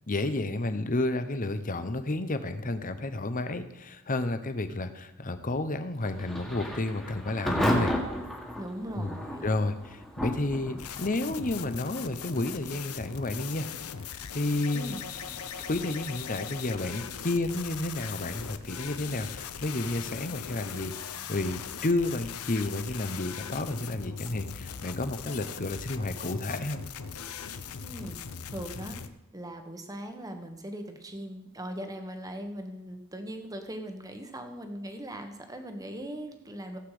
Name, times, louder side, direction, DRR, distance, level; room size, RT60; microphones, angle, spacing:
voice 1, 0.1-8.0 8.9-9.1 9.4-13.7 14.1-14.9 15.7-26.8, left 2 dB, 40° left, 10 dB, 0.9 m, -31 dB
Thunder / Rain, 6.0-22.7, equal, ahead, 1.8 m, -37 dB
voice 2, 8.6-9.5 14.7-15.0 27.8-28.2 28.5-29.0 29.3-36.8, right 1 dB, 15° right, 5 dB, 1.3 m, -39 dB
sound 1, 10.8-29.1, left 7 dB, 85° left, 0.8 m, -40 dB
16.5 x 8.3 x 5.0 m, 0.93 s
head